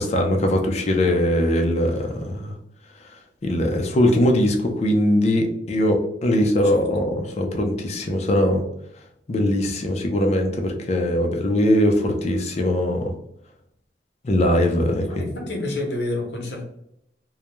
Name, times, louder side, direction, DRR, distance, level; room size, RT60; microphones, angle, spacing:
voice 1, 0.0-2.5 3.4-8.6 9.3-13.1 14.2-15.3, left 1 dB, 40° left, 3 dB, 0.4 m, -21 dB
voice 2, 15.0-16.7, left 2 dB, 65° left, 1 dB, 0.8 m, -29 dB
2.3 x 2.1 x 2.9 m, 0.75 s
head